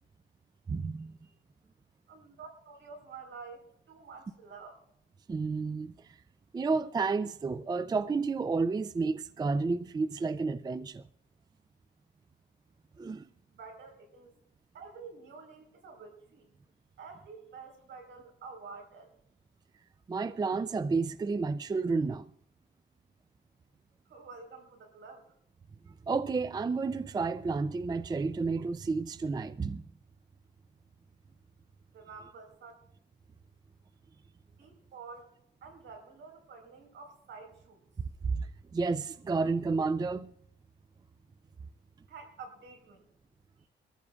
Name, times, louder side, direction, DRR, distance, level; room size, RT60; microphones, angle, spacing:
voice 1, 0.7-1.1 5.3-6.2 6.5-11.0 13.0-13.3 20.1-22.3 26.1-29.8 38.2-40.3, right 4 dB, 20° right, 0.4 m, -31 dB
voice 2, 2.1-4.8 13.5-14.3 14.7-16.5 17.0-19.2 24.1-25.3 31.9-32.7 34.5-35.3 35.6-37.8 42.1-43.1 43.6-43.7, right 4 dB, 70° right, 4.4 m, -49 dB
23.5 x 14.5 x 2.4 m
cardioid pair, 90°, 20 cm